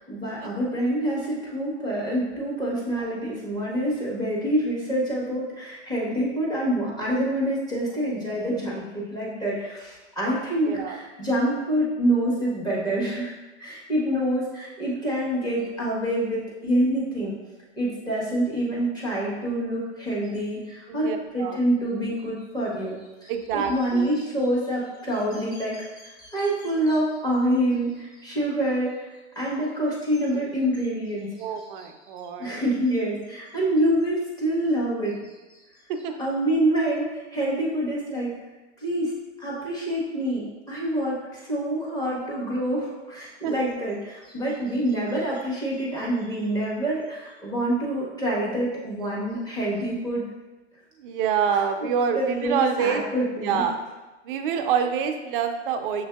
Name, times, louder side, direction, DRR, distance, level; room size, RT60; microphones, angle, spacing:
voice 1, 0.0-13.3 13.6-17.4 17.8-29.1 29.3-31.3 31.8-31.9 32.4-35.6 36.2-38.3 38.8-39.1 39.4-50.2 51.8-51.9 52.1-53.6, right 1 dB, 10° left, -6 dB, 1.1 m, -26 dB
voice 2, 10.7-11.0 20.9-21.6 23.3-24.1 31.4-32.6 36.0-36.1 43.4-43.7 51.0-53.0 53.4-53.8 54.3-56.1, right 7 dB, 50° right, 6 dB, 0.5 m, -26 dB
6.6 x 2.6 x 2.3 m, 1.1 s
hypercardioid pair, 135°, 36 cm